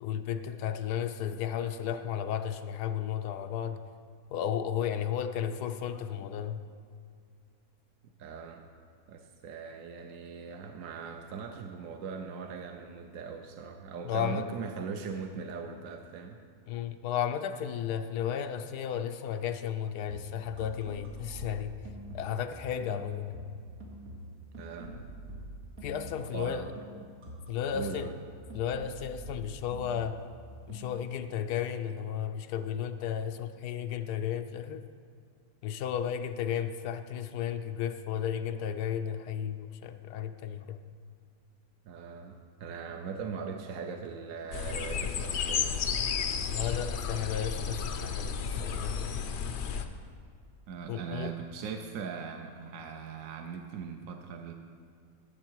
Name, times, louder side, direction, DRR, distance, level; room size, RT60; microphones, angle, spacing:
voice 1, 0.0-3.8 4.3-6.6 14.0-14.5 16.7-21.7 22.1-23.4 25.8-26.6 26.9-27.0 27.5-28.1 28.5-30.2 30.7-34.8 35.6-40.8 46.5-49.2 50.9-51.4, left 9 dB, 85° left, 8 dB, 1.2 m, -34 dB
voice 2, 8.2-8.7 9.1-16.4 24.6-25.0 26.3-26.8 27.7-28.1 41.8-45.8 50.7-54.5, right 6 dB, 65° right, 4 dB, 1.0 m, -40 dB
sound 1, 20.0-22.5 22.8-26.5 26.8-30.4 30.7-31.0, right 1 dB, 85° right, 2.6 m, -45 dB
sound 2, 44.5-49.8, left 6 dB, 60° left, 0.7 m, -32 dB
13.5 x 7.5 x 4.6 m, 2.2 s
omnidirectional pair, 1.7 m